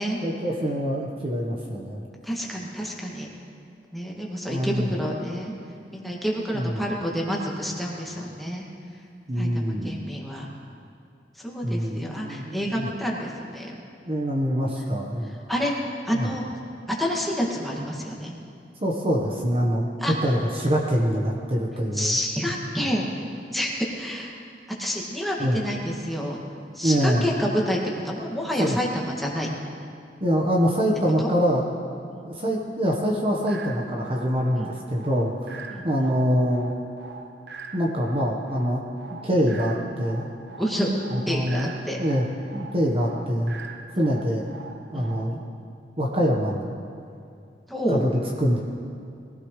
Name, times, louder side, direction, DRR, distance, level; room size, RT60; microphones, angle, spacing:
voice 1, 0.2-2.1 4.5-4.9 6.5-6.8 9.3-10.1 11.6-12.9 14.1-15.3 16.1-16.3 18.8-19.9 20.2-22.2 25.4-25.6 26.8-27.3 28.6-28.8 30.2-31.7 32.2-36.7 37.7-38.8 39.2-40.3 41.1-41.7 42.0-42.3 42.5-43.6 44.0-44.4 44.9-45.4 46.0-46.7 47.9-48.1 48.4-48.6, equal, 35° right, -1 dB, 1.2 m, -24 dB
voice 2, 2.2-3.3 3.9-5.5 5.9-8.7 9.4-10.5 11.4-13.7 15.5-15.7 16.1-16.5 17.0-18.3 20.0-20.1 21.9-23.0 23.5-24.3 24.8-26.4 26.7-27.8 28.0-29.5 31.2-31.3 32.1-32.2 34.6-34.7 35.7-35.9 40.6-40.9 41.3-42.0 43.9-44.1 44.9-45.1 47.7-48.0, equal, ahead, -3 dB, 2.1 m, -28 dB
sound 1, 33.5-45.5, right 4 dB, 70° right, 1.0 m, -43 dB
22.0 x 16.0 x 3.3 m, 2.5 s
head